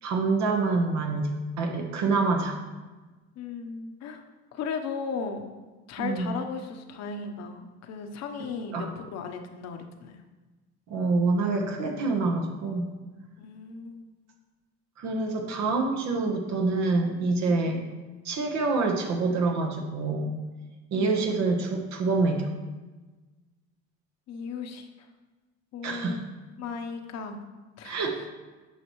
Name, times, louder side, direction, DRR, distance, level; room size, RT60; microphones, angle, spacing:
voice 1, 0.0-1.3 1.6-2.6 6.0-6.3 8.7-8.9 10.9-12.9 15.0-17.8 18.2-20.3 20.9-22.5 25.8-26.2 27.8-28.2, right 3 dB, 70° right, 2 dB, 1.2 m, -26 dB
voice 2, 3.4-4.2 4.5-5.5 5.9-10.2 13.4-14.1 17.5-17.6 20.9-21.2 24.3-25.1 25.7-26.3 26.6-27.4 27.8-28.2, left 5 dB, 60° left, 5 dB, 1.0 m, -36 dB
9.8 x 5.6 x 3.1 m, 1.2 s
cardioid pair, 100°, 29 cm